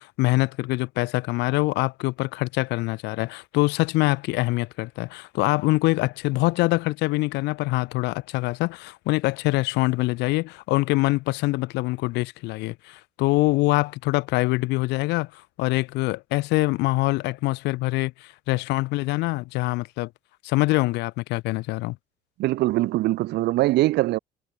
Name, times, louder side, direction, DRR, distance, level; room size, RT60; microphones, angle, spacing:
voice 1, 0.0-20.1 20.4-22.0, left 21 dB, 90° left, 0.8 m, -24 dB
voice 2, 22.4-24.2, right 17 dB, 80° right, 2.2 m, -22 dB
cardioid pair, 110°, 17 cm